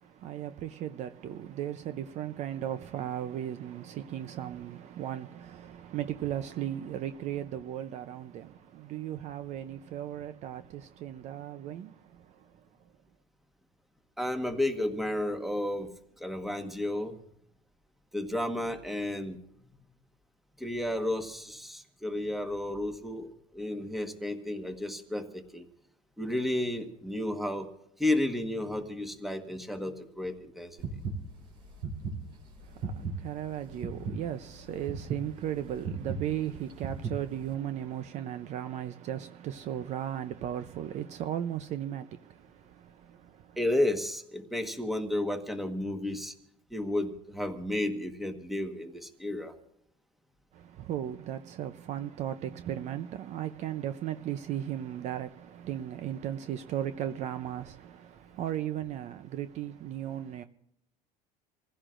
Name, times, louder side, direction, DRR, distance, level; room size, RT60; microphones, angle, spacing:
voice 1, 0.0-12.7 32.6-43.6 50.5-60.4, right 11 dB, 50° right, 0.6 m, -36 dB
voice 2, 14.2-15.9 16.2-17.2 18.1-19.4 20.6-25.7 26.2-27.7 28.0-30.8 43.6-46.3 46.7-49.5, left 1 dB, ahead, 1.3 m, -32 dB
sound 1, 30.8-37.5, right 4 dB, 80° right, 4.6 m, -37 dB
27.0 x 15.5 x 2.6 m
cardioid pair, 140°, 16 cm